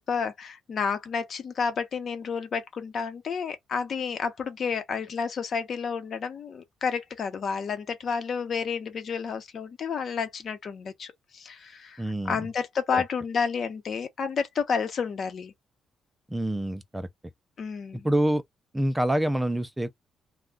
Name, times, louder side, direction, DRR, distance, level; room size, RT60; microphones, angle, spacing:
voice 1, 0.0-15.5 17.6-18.1, left 6 dB, 55° left, 0.9 m, -30 dB
voice 2, 12.0-12.4 12.9-13.0 16.3-17.1 18.0-18.4 18.7-20.0, right 1 dB, 10° right, 0.4 m, -26 dB
2.3 x 2.3 x 3.7 m
cardioid pair, 90°, 0 cm